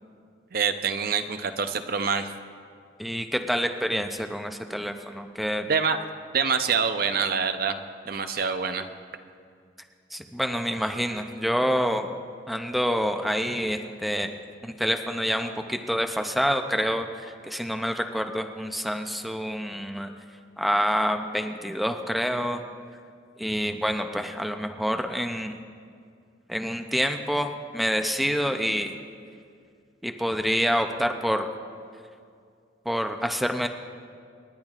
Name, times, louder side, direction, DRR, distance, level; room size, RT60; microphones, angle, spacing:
voice 1, 0.5-2.3 5.6-6.0 6.3-7.8 8.1-8.9, right 6 dB, 55° right, 9 dB, 0.6 m, -26 dB
voice 2, 3.0-5.6 10.1-12.1 12.5-14.3 14.6-20.1 20.6-22.6 23.4-25.6 26.5-29.0 30.0-31.5 32.9-33.7, equal, ahead, 5 dB, 0.4 m, -27 dB
27.5 x 10.5 x 2.4 m, 2.3 s
head